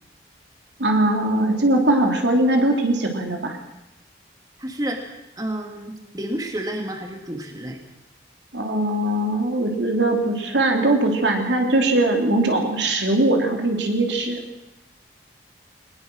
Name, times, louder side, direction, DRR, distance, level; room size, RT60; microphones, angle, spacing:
voice 1, 0.8-3.6 8.5-14.4, right 1 dB, 80° right, 2 dB, 3.3 m, -20 dB
voice 2, 4.6-5.1 5.4-7.8, right 1 dB, 20° right, 3 dB, 2.0 m, -30 dB
21.0 x 20.0 x 6.3 m, 0.91 s
head